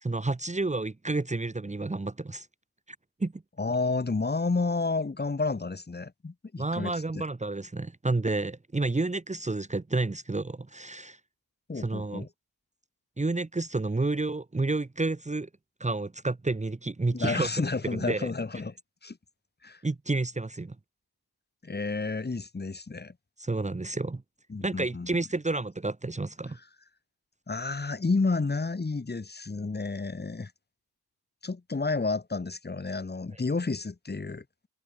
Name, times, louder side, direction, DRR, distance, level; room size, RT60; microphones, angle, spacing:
voice 1, 0.0-2.5 3.2-3.3 6.6-11.2 11.8-12.3 13.2-15.5 15.8-17.5 17.9-18.3 19.8-20.8 23.4-24.2 24.6-26.6 33.3-33.4, right 2 dB, 15° right, 2.0 m, -30 dB
voice 2, 3.6-7.2 11.7-12.3 17.1-18.7 19.0-19.2 19.6-19.8 21.6-23.1 24.5-25.1 27.5-30.5 31.4-34.4, left 3 dB, 25° left, 3.1 m, -30 dB
wide cardioid pair, 115°, 39 cm